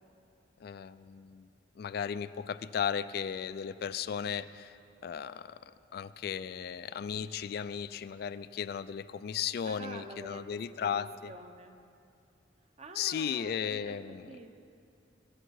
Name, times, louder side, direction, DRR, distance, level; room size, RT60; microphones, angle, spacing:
voice 1, 0.6-1.5 1.8-5.6 5.9-11.3 13.0-14.4, left 7 dB, 55° left, 14 dB, 0.3 m, -36 dB
voice 2, 9.6-11.8 12.8-14.5, right 2 dB, 35° right, 7 dB, 0.8 m, -48 dB
22.0 x 8.9 x 4.7 m, 2.6 s
head